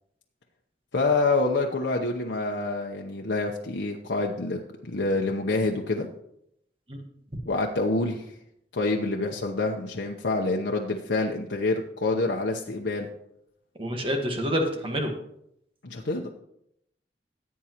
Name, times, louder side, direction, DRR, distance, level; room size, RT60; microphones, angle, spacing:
voice 1, 0.9-6.1 7.4-8.3 8.7-13.1 15.8-16.3, left 3 dB, 85° left, 0 dB, 0.9 m, -27 dB
voice 2, 13.8-15.1, equal, 30° right, 3 dB, 1.5 m, -27 dB
16.0 x 8.4 x 3.0 m, 0.76 s
head